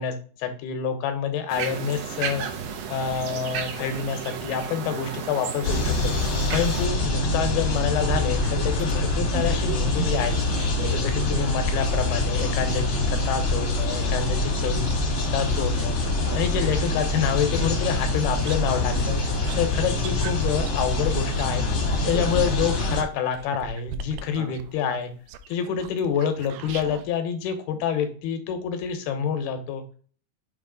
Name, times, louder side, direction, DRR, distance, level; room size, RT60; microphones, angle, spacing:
voice 1, 0.0-2.4 2.9-6.1 6.5-10.3 10.9-11.0 11.3-14.9 15.3-16.0 16.3-19.2 19.6-21.7 22.1-25.1 25.5-29.8, left 7 dB, 75° left, 7 dB, 2.7 m, -27 dB
sound 1, 1.5-6.9, right 7 dB, 70° right, 2.5 m, -33 dB
sound 2, 5.6-23.0, left 2 dB, 50° left, 1.6 m, -25 dB
voice 2, 8.0-8.3 10.7-11.5 12.4-12.8 14.0-14.1 16.2-16.7 18.6-19.7 20.0-20.1 22.0-22.3 24.3-24.5, right 2 dB, 55° right, -3 dB, 2.2 m, -38 dB
sound 3, 8.0-11.0 11.5-15.9 16.4-27.1, right 7 dB, 90° right, 2.0 m, -39 dB
6.7 x 3.1 x 5.1 m, 0.42 s
omnidirectional pair, 4.8 m